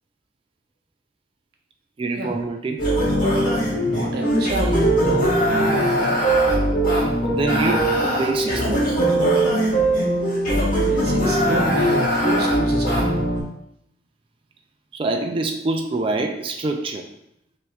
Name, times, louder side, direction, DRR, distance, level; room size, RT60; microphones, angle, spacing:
voice 1, 2.0-2.8 7.3-9.0 14.9-17.1, right 3 dB, 30° right, 3 dB, 0.3 m, -25 dB
sound 1, 2.8-13.4, right 1 dB, 50° left, 1.6 m, -20 dB
voice 2, 3.8-6.2 10.7-13.2, right 1 dB, 60° right, 0 dB, 0.8 m, -27 dB
6.1 x 3.0 x 2.4 m, 0.74 s
head